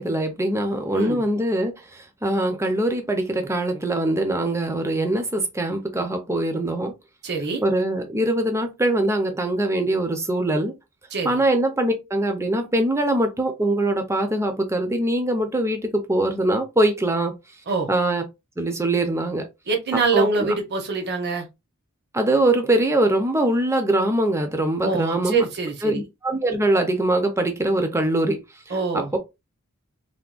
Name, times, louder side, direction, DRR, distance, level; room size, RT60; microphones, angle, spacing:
voice 1, 0.0-1.7 2.2-6.9 7.6-10.7 11.2-17.3 17.9-18.2 18.6-19.5 20.1-20.5 22.1-25.4 25.8-28.4 28.9-29.2, right 1 dB, 15° right, 0.5 m, -22 dB
voice 2, 7.2-7.6 11.1-11.4 17.7-17.9 19.7-21.5 24.8-26.0 28.7-29.1, right 4 dB, 50° right, 0.8 m, -24 dB
3.4 x 2.2 x 2.4 m
head